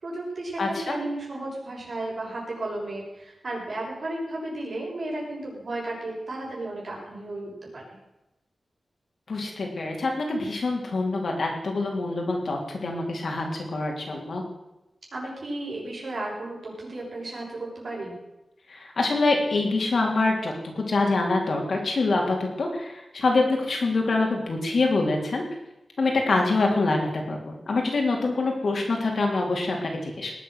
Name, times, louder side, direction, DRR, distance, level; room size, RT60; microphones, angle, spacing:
voice 1, 0.0-8.0 15.1-18.1, right 2 dB, 55° right, -3 dB, 6.5 m, -34 dB
voice 2, 0.6-1.0 9.3-14.4 18.7-25.4 26.0-30.3, left 3 dB, 65° left, 1 dB, 3.5 m, -25 dB
19.5 x 8.4 x 6.4 m, 0.96 s
wide cardioid pair, 110°, 0 cm